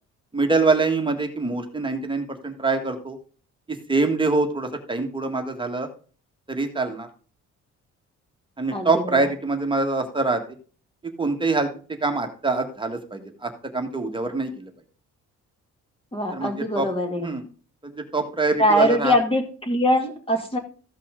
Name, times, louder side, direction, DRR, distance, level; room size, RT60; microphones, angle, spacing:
voice 1, 0.3-3.2 3.7-5.9 6.5-7.1 8.6-10.4 11.2-11.7 12.0-14.7 16.3-16.9 17.2-17.4 17.8-19.1, right 3 dB, 15° right, 4 dB, 1.7 m, -24 dB
voice 2, 8.7-9.2 16.1-17.3 18.6-20.6, equal, 15° left, 4 dB, 2.4 m, -22 dB
14.5 x 5.7 x 3.7 m, 0.39 s
cardioid pair, 130°, 31 cm